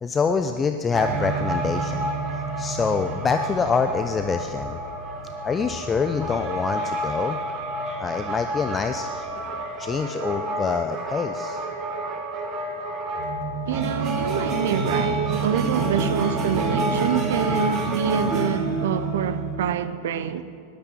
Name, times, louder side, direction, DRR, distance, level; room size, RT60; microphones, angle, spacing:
voice 1, 0.0-2.1 2.6-4.8 5.4-7.4 8.0-9.3 9.8-11.6, left 5 dB, 20° left, 0.6 m, -25 dB
sound 1, 0.9-19.6, right 2 dB, 30° right, 1.9 m, -28 dB
voice 2, 13.7-20.4, right 8 dB, 55° right, 0.9 m, -26 dB
18.5 x 12.5 x 6.0 m
figure-of-eight pair, 90°, 0 cm